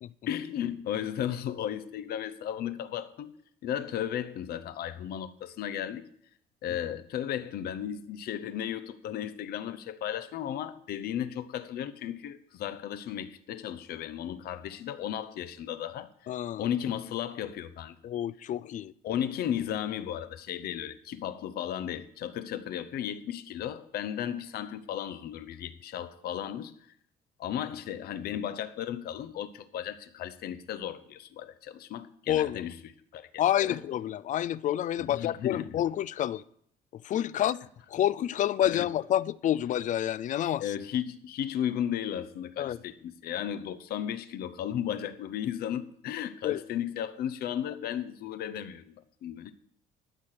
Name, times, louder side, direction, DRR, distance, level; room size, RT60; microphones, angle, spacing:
voice 1, 0.3-3.3 3.6-6.1 6.6-16.1 16.6-18.0 19.0-26.8 27.4-32.7 33.1-33.8 35.0-35.8 38.7-38.9 40.6-49.5, left 10 dB, 65° left, 0.8 m, -35 dB
voice 2, 16.3-16.7 18.0-18.9 32.3-32.6 33.4-36.4 36.9-37.6 37.9-40.7 42.6-42.8 46.4-46.6, left 11 dB, 50° left, 0.4 m, -28 dB
12.5 x 5.8 x 6.5 m
cardioid pair, 110°, 17 cm